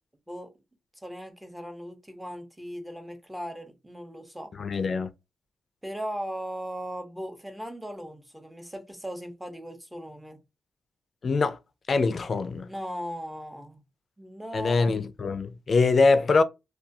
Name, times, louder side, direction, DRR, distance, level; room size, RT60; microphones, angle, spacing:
voice 1, 1.0-4.5 5.8-10.4 12.7-13.8 14.2-14.9, equal, 5° right, 0.7 m, -38 dB
voice 2, 4.6-5.1 11.2-11.6 11.9-12.7 14.5-16.4, left 4 dB, 55° left, 0.4 m, -23 dB
2.3 x 2.3 x 2.6 m
cardioid pair, 80°, 0 cm